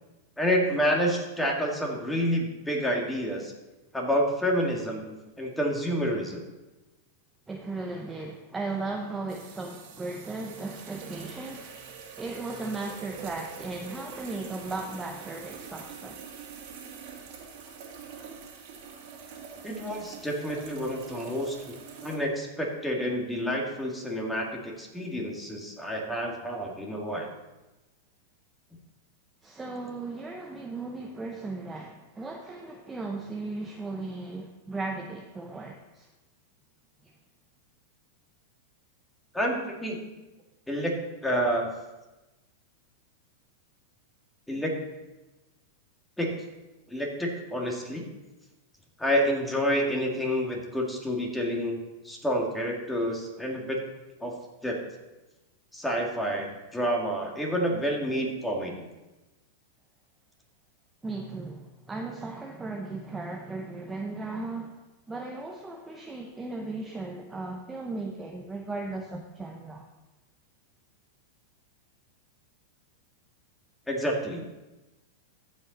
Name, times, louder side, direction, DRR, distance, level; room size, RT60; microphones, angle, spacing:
voice 1, 0.4-3.5 3.9-6.4 19.6-21.6 22.0-27.3 39.3-40.1 40.7-41.7 44.5-44.7 46.2-46.4 46.9-48.0 49.0-51.8 52.0-53.8 54.2-54.3 54.6-54.8 55.7-58.7 73.9-74.4, equal, 5° left, -1 dB, 2.0 m, -29 dB
voice 2, 7.5-16.4 29.4-36.1 37.0-37.1 61.0-64.8 65.1-69.9, right 3 dB, 15° right, 2 dB, 0.8 m, -36 dB
sound 1, 9.3-22.2, right 6 dB, 55° right, 2.2 m, -45 dB
14.5 x 5.3 x 4.1 m, 1.1 s
hypercardioid pair, 125°, 0 cm